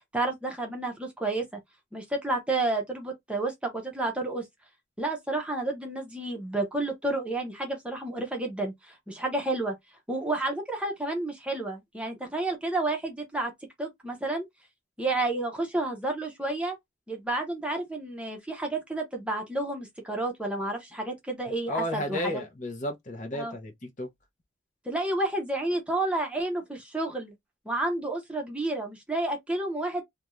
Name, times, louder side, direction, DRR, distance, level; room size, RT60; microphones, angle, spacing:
voice 1, 0.1-1.6 1.9-4.4 5.0-9.7 10.1-13.5 13.8-14.5 15.0-16.8 17.1-22.4 23.3-23.5 24.8-27.3 27.7-30.0, right 2 dB, 5° right, 0.7 m, -30 dB
voice 2, 21.7-24.1, left 1 dB, 40° left, 0.6 m, -33 dB
2.5 x 2.2 x 3.0 m
head